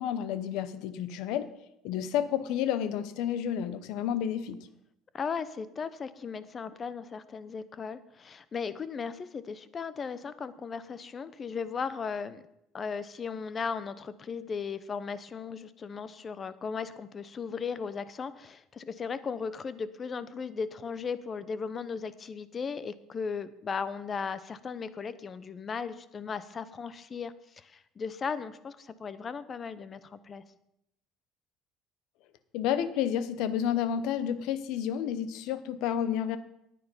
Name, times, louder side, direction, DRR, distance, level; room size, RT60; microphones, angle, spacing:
voice 1, 0.0-1.5 1.8-4.6 32.5-36.4, left 9 dB, 75° left, 13 dB, 0.9 m, -30 dB
voice 2, 5.1-12.4 12.7-30.4, left 5 dB, 35° left, 15 dB, 0.8 m, -36 dB
9.7 x 9.3 x 5.6 m, 0.82 s
supercardioid pair, 90°, 0 cm